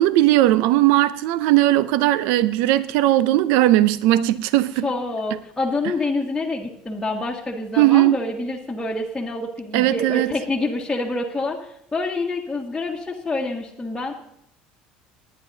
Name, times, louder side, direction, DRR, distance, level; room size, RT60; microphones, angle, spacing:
voice 1, 0.0-4.9 7.8-8.2 9.7-10.3, right 15 dB, 75° right, 0.5 m, -18 dB
voice 2, 4.8-11.6 11.9-14.1, left 2 dB, 10° left, 1.7 m, -27 dB
20.0 x 9.7 x 2.7 m
supercardioid pair, 90°, 4 cm